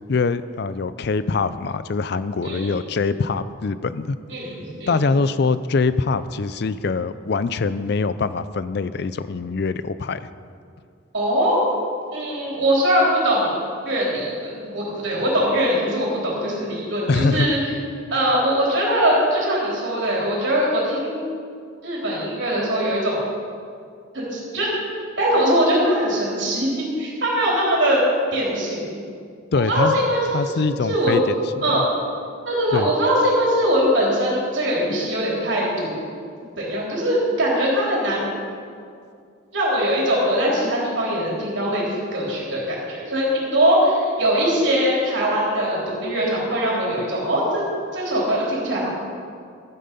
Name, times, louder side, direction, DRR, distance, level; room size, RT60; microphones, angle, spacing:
voice 1, 0.1-4.2 4.9-10.2 17.1-17.5 29.5-30.0 30.3-31.2 31.6-31.9 32.7-32.9, left 4 dB, 55° left, 14 dB, 0.4 m, -23 dB
voice 2, 2.4-2.7 4.3-5.0 11.1-11.6 12.1-13.6 13.9-17.6 18.1-21.2 21.8-23.2 24.1-24.7 25.2-28.0 28.3-28.8 29.7-30.2 30.5-30.6 30.8-31.2 31.6-31.9 32.5-35.9 36.6-38.3 39.5-47.6 47.9-48.9, equal, 65° right, -5 dB, 3.7 m, -21 dB
12.5 x 9.7 x 5.4 m, 2.3 s
head